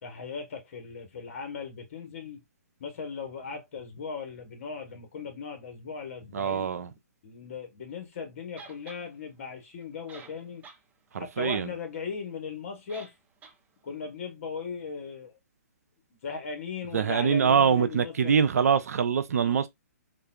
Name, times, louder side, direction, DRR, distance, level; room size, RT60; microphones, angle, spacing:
voice 1, 0.0-2.4 2.8-6.7 7.2-10.7 11.2-13.1 13.8-15.4 16.2-18.3 19.4-19.6, left 5 dB, 50° left, 1.2 m, -38 dB
voice 2, 6.3-6.9 11.1-11.7 16.9-19.7, right 7 dB, 70° right, 0.5 m, -24 dB
sound 1, 8.6-9.0 9.8-9.9 10.1-10.8 11.2-11.3 12.9-13.2 13.4-13.6, right 5 dB, 15° right, 0.5 m, -48 dB
3.6 x 2.3 x 2.2 m
hypercardioid pair, 130°, 9 cm